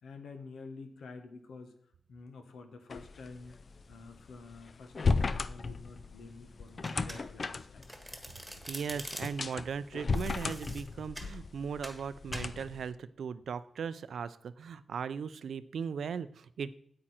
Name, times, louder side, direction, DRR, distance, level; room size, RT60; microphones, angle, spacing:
voice 1, 0.0-1.8 2.1-3.6 3.9-7.8, left 3 dB, 85° left, 6 dB, 1.4 m, -49 dB
sound 1, 2.9-12.9, left 4 dB, 45° left, 0.4 m, -35 dB
Domestic sounds home sounds, 6.8-7.5 7.8-9.5 10.1-11.3 11.8-12.0 12.3-12.5, equal, ahead, 1.5 m, -44 dB
voice 2, 8.7-16.7, right 6 dB, 75° right, 15 dB, 0.5 m, -38 dB
8.9 x 8.7 x 4.4 m, 0.67 s
wide cardioid pair, 110°, 0 cm